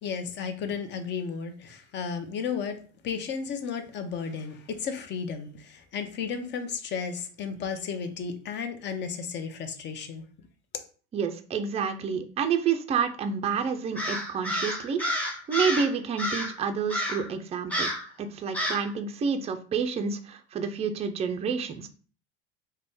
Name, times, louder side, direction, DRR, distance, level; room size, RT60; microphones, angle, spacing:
voice 1, 0.0-10.2, left 6 dB, 35° left, 0.6 m, -34 dB
voice 2, 11.1-17.9 18.2-21.9, right 6 dB, 20° right, 0.4 m, -29 dB
Crow, 14.0-15.9 16.2-16.6 16.9-17.3 17.7-18.1 18.5-18.9, equal, 5° left, 0.8 m, -30 dB
2.4 x 2.2 x 3.5 m
supercardioid pair, 95°, 30 cm